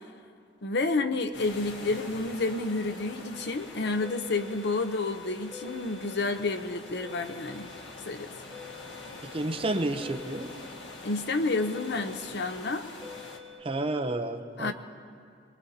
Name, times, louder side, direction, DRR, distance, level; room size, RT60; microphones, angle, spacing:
voice 1, 0.6-7.7 8.1-8.3 11.0-12.9 14.6-14.7, left 3 dB, 65° left, 8 dB, 0.8 m, -30 dB
sound 1, 1.3-13.4, left 2 dB, 85° left, 1.6 m, -45 dB
sound 2, 3.3-13.6, left 6 dB, ahead, 0.8 m, -49 dB
voice 2, 9.3-10.5 13.6-14.7, right 2 dB, 30° right, 6 dB, 0.7 m, -30 dB
24.0 x 21.0 x 2.8 m, 2.5 s
head